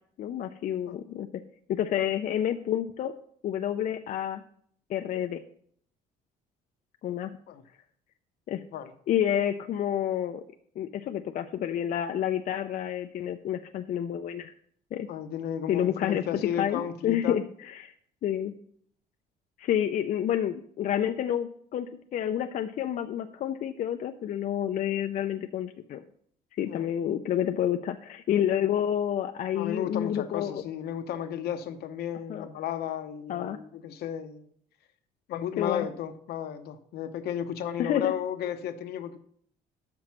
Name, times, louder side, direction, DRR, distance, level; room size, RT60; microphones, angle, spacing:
voice 1, 0.2-1.3 1.7-3.1 3.4-4.4 4.9-5.4 7.0-7.4 8.5-8.7 9.1-10.4 10.8-14.5 14.9-15.1 15.7-16.2 16.6-17.9 18.2-18.6 19.6-21.9 22.1-26.0 26.6-30.6 32.3-32.5 33.3-33.6 35.6-35.9 37.8-38.1, left 10 dB, 50° left, 6 dB, 0.5 m, -29 dB
voice 2, 15.1-17.4 26.7-26.9 29.5-34.5 35.3-39.2, left 9 dB, 70° left, 9 dB, 0.9 m, -34 dB
6.3 x 6.0 x 5.9 m, 0.63 s
cardioid pair, 110°, 17 cm